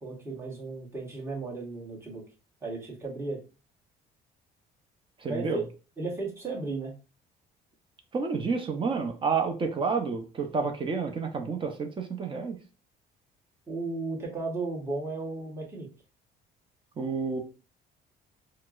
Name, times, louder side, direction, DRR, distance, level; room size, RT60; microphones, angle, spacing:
voice 1, 0.0-2.2 2.6-3.4 5.3-5.6 6.0-6.9 13.7-15.9, right 3 dB, 15° right, -4 dB, 1.3 m, -35 dB
voice 2, 5.2-5.6 8.1-12.6 17.0-17.4, right 5 dB, 30° right, 4 dB, 0.7 m, -29 dB
4.3 x 2.0 x 2.4 m, 0.33 s
cardioid pair, 110°, 17 cm